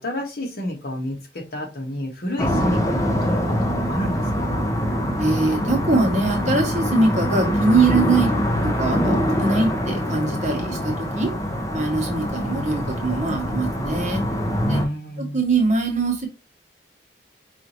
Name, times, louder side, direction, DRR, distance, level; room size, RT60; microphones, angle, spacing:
voice 1, 0.0-4.7 14.6-15.4, left 1 dB, 60° left, 1 dB, 1.3 m, -29 dB
sound 1, 2.4-14.8, equal, 20° left, 0.7 m, -24 dB
voice 2, 5.2-8.3 8.6-11.3 11.7-14.2 14.7-14.8 15.2-16.3, right 3 dB, 40° right, 1 dB, 1.1 m, -22 dB
4.8 x 2.7 x 2.9 m, 0.28 s
head